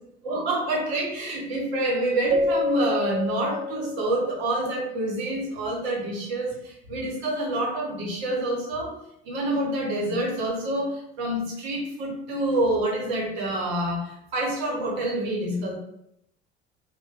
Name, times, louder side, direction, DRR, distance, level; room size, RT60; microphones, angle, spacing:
voice 1, 0.2-8.9 9.2-15.7, right 1 dB, 75° right, -1 dB, 1.0 m, -27 dB
Keyboard (musical), 2.3-4.7, left 2 dB, 20° right, 0.4 m, -28 dB
5.0 x 2.2 x 2.4 m, 0.79 s
hypercardioid pair, 60°, 32 cm